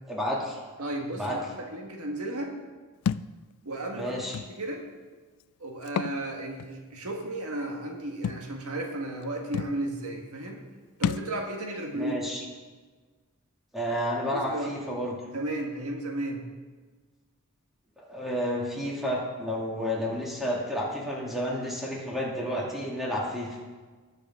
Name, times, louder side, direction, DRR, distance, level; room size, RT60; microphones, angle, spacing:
voice 1, 0.1-0.6 1.2-1.4 3.9-4.4 11.9-12.4 13.7-15.2 18.1-23.6, equal, ahead, -5 dB, 2.4 m, -31 dB
voice 2, 0.8-2.5 3.6-4.1 4.5-4.8 5.6-10.6 11.0-12.1 14.3-14.7 15.3-16.5, right 1 dB, 80° right, 1 dB, 1.6 m, -34 dB
Thump thud, 3.1-3.3 4.3-4.5 5.8-6.2 6.6-6.7 8.2-8.4 9.2-9.3 9.5-9.8 11.0-11.3, left 7 dB, 75° left, 0.3 m, -29 dB
19.5 x 6.6 x 3.7 m, 1.4 s
head